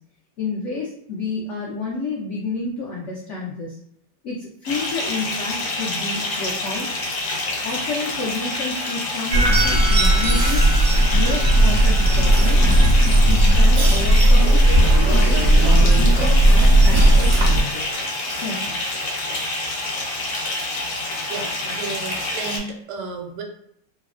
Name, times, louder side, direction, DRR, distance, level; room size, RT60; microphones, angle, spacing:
voice 1, 0.4-3.8 4.2-6.9 7.6-10.7 11.1-12.7 13.1-14.8 15.1-17.9 18.4-18.7, left 3 dB, 80° left, -3 dB, 0.6 m, -30 dB
Bathtub (filling or washing) / Fill (with liquid), 4.7-22.6, left 2 dB, 65° left, 1.0 m, -27 dB
sound 1, 9.3-17.6, right 1 dB, 65° right, 0.9 m, -15 dB
voice 2, 21.3-23.4, right 4 dB, 80° right, 1 dB, 1.2 m, -32 dB
3.1 x 2.1 x 2.4 m, 0.70 s
omnidirectional pair, 1.9 m